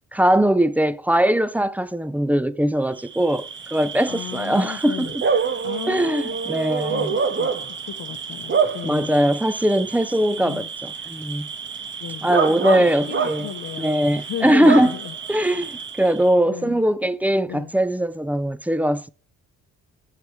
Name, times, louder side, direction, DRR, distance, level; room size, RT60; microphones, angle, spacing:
voice 1, 0.1-5.2 5.9-7.1 8.8-11.5 12.2-13.5 13.8-15.0 15.3-19.1, right 1 dB, 5° right, 0.5 m, -21 dB
Bark / Cricket, 3.0-16.3, right 6 dB, 40° right, 1.3 m, -28 dB
voice 2, 4.1-5.1 5.6-7.5 7.9-9.3 10.4-10.7 12.0-12.3 12.7-15.1 16.5-16.8 17.5-17.7, left 11 dB, 60° left, 0.7 m, -35 dB
7.7 x 6.7 x 3.1 m
cardioid pair, 90°, 30 cm